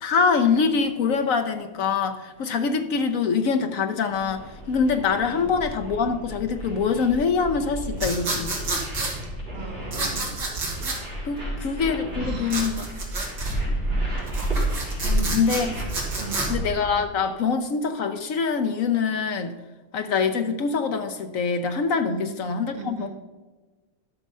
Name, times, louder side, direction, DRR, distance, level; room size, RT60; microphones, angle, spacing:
voice 1, 0.0-8.6 11.2-12.8 15.3-15.7 16.5-19.6 19.9-23.1, left 5 dB, 75° left, 7 dB, 0.7 m, -24 dB
sound 1, 4.1-17.0, right 1 dB, 25° right, 3.9 m, -31 dB
sound 2, 8.0-9.1 9.9-11.0 12.5-13.6 14.2-16.5, right 2 dB, 55° right, 3.0 m, -29 dB
voice 2, 9.5-10.2 12.2-12.9 15.0-15.4 16.2-16.5 22.1-22.3 22.7-23.1, right 3 dB, 85° right, 3 dB, 2.1 m, -37 dB
12.0 x 6.3 x 5.4 m, 1.3 s
omnidirectional pair, 2.3 m